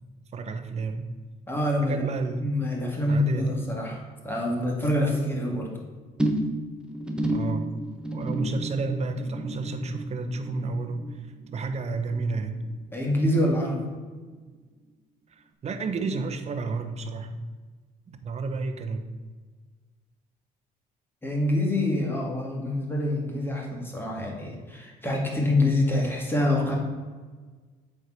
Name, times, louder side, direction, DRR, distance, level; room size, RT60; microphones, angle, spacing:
voice 1, 0.3-1.1 1.8-2.4 3.1-3.6 7.3-7.7 8.1-12.6 15.6-17.4 18.1-19.1, right 3 dB, 40° right, 7 dB, 1.0 m, -31 dB
voice 2, 1.5-2.0 2.4-5.7 12.9-13.8 21.2-26.8, left 1 dB, 10° left, -1 dB, 2.2 m, -26 dB
sound 1, 6.2-12.8 13.0-13.5 13.8-13.9, right 1 dB, 5° right, 1.1 m, -32 dB
8.0 x 4.8 x 6.2 m, 1.4 s
cardioid pair, 110°, 17 cm